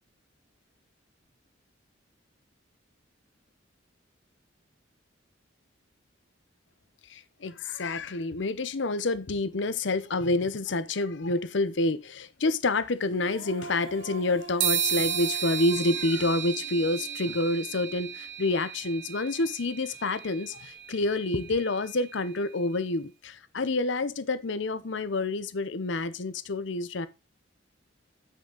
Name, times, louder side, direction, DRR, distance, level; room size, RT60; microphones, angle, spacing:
voice 1, 7.1-27.1, left 2 dB, 65° left, 0.7 m, -28 dB
Female singing, 13.1-18.3, right 2 dB, 90° right, 1.9 m, -45 dB
sound 1, 14.6-22.3, right 8 dB, 70° right, 1.8 m, -34 dB
8.0 x 6.5 x 3.8 m
head